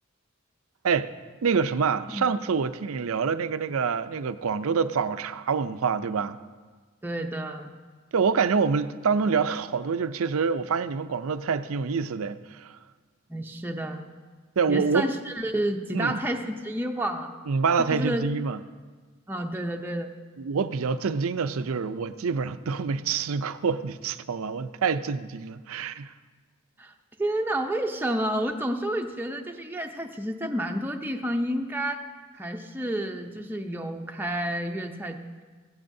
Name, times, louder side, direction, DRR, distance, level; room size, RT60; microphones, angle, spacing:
voice 1, 1.4-6.4 8.1-12.8 14.6-15.1 15.9-16.2 17.5-18.6 20.4-26.1, right 5 dB, 80° right, 0.5 m, -26 dB
voice 2, 7.0-7.7 13.3-14.0 14.7-17.4 17.9-18.2 19.3-20.1 26.8-26.9 27.2-32.0 32.3-35.2, right 1 dB, 10° right, 0.6 m, -30 dB
16.5 x 15.5 x 2.7 m
head